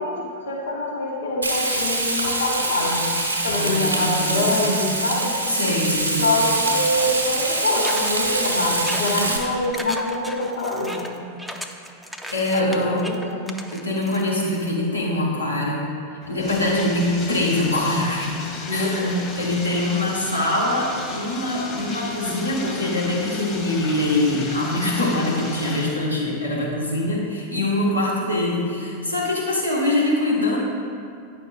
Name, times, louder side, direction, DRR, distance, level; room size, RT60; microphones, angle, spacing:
voice 1, 0.0-3.1 3.4-5.3 6.2-11.1 12.5-13.5 18.7-19.3, left 1 dB, 65° left, -3 dB, 1.2 m, -25 dB
Frying (food), 1.4-9.4, right 2 dB, 85° right, 0.9 m, -24 dB
voice 2, 3.5-4.5 5.5-6.3 12.3-13.1 13.7-15.8 16.3-18.3 18.7-30.6, left 1 dB, 85° left, -5 dB, 1.3 m, -23 dB
sound 1, 7.8-14.7, equal, ahead, 0.4 m, -36 dB
Bathtub (filling or washing), 16.2-26.0, left 3 dB, 30° left, 1.1 m, -35 dB
9.3 x 5.9 x 2.6 m, 2.3 s
figure-of-eight pair, 90°, 0 cm